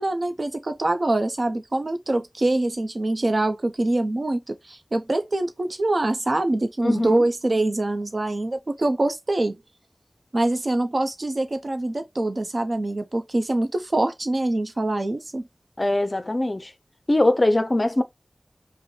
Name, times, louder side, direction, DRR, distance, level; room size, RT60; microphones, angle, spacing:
voice 1, 0.0-9.6 10.3-15.4, right 2 dB, 55° right, 0.7 m, -24 dB
voice 2, 6.8-7.2 15.8-16.7 17.1-18.0, left 1 dB, 40° left, 0.5 m, -21 dB
5.0 x 2.1 x 3.1 m
wide cardioid pair, 65°, 0 cm